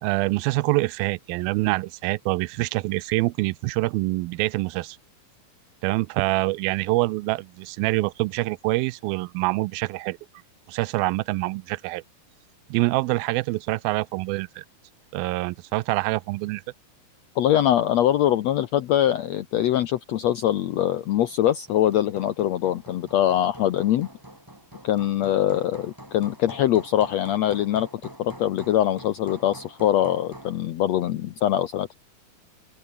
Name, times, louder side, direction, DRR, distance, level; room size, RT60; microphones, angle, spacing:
voice 1, 0.0-5.0 5.8-10.2 10.7-12.0 12.7-14.6 15.1-16.6, right 21 dB, 90° right, 2.4 m, -25 dB
voice 2, 17.4-24.1 24.8-27.9 28.2-31.9, left 12 dB, 75° left, 1.5 m, -23 dB
Hammer, 21.0-30.6, right 1 dB, 5° right, 2.8 m, -46 dB
omnidirectional pair, 4.2 m